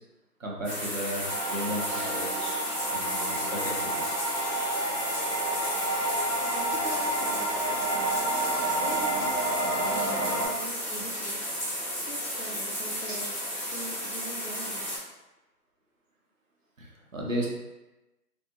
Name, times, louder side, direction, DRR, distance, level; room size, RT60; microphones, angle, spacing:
voice 1, 0.4-2.6 2.9-4.2 16.8-17.5, equal, 55° right, -2 dB, 0.8 m, -35 dB
sound 1, 0.6-15.0, equal, 30° left, 1.3 m, -33 dB
sound 2, 1.2-10.5, right 1 dB, 25° right, 0.9 m, -30 dB
voice 2, 6.0-9.6 9.9-11.6 11.9-13.3 13.7-15.0, equal, 50° left, -3 dB, 0.6 m, -43 dB
3.3 x 2.1 x 2.8 m, 1.0 s
figure-of-eight pair, 175°, 48 cm